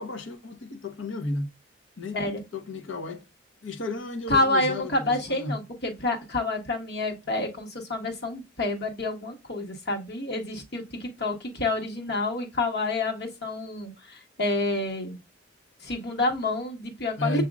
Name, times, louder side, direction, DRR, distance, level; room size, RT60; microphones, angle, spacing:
voice 1, 0.0-1.5 2.0-3.3 3.6-5.6 17.2-17.5, left 2 dB, 80° left, 1.0 m, -33 dB
voice 2, 4.3-15.2 15.8-17.5, left 2 dB, 60° left, 1.5 m, -28 dB
7.2 x 2.7 x 2.4 m
head